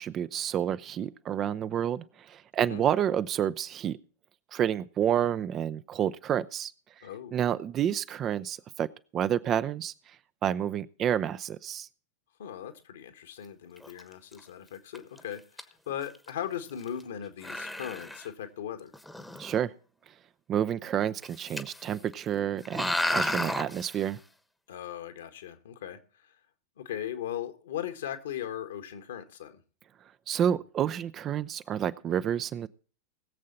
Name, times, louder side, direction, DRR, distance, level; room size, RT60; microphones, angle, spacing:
voice 1, 0.0-4.0 4.5-6.7 7.3-8.9 9.1-9.9 10.4-11.9 19.4-19.7 20.5-24.2 30.3-32.7, right 10 dB, 30° right, 0.6 m, -29 dB
voice 2, 7.0-7.4 12.4-18.9 24.7-26.3 26.8-29.6, left 10 dB, 60° left, 1.7 m, -38 dB
sound 1, 13.8-14.0 14.3-14.4 14.9-15.2 15.6-15.7 15.9-16.3 16.8-17.0 17.4-18.3 18.9-19.6 21.2-21.9 22.1-22.2 22.7-24.0, left 1 dB, 5° left, 1.2 m, -32 dB
20.5 x 7.6 x 4.1 m
figure-of-eight pair, 90°, 0 cm